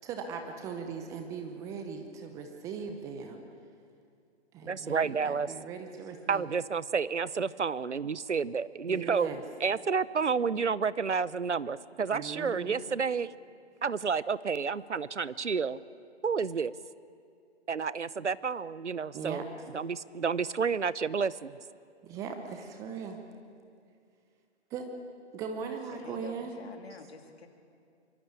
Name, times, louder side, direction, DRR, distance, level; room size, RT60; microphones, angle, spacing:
voice 1, 0.0-3.4 4.5-6.5 8.9-9.4 12.1-12.8 19.1-19.4 22.0-23.2 24.7-24.9 25.3-26.5, right 6 dB, 10° right, 5 dB, 0.8 m, -39 dB
voice 2, 4.6-5.5 6.3-9.3 9.6-13.3 13.8-15.8 16.2-16.7 17.7-19.4 19.7-21.6, right 5 dB, 85° right, 19 dB, 0.9 m, -30 dB
voice 3, 25.7-27.5, left 4 dB, 60° left, 4 dB, 3.4 m, -49 dB
24.5 x 23.0 x 8.5 m, 2.4 s
figure-of-eight pair, 145°, 34 cm